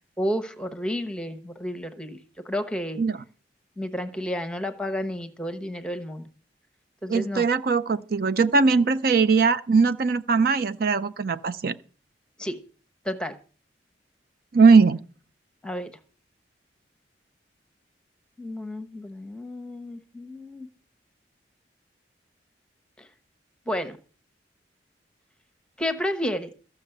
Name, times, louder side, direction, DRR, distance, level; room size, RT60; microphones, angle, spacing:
voice 1, 0.2-2.2 2.4-3.0 3.8-6.3 7.0-7.5 12.4-12.6 13.0-13.4 15.6-15.9 18.4-20.7 23.0-23.1 23.7-24.0 25.8-26.5, equal, 5° left, 1.1 m, -31 dB
voice 2, 7.1-11.7 14.5-15.0, right 4 dB, 55° right, 0.5 m, -20 dB
14.0 x 6.5 x 7.9 m
head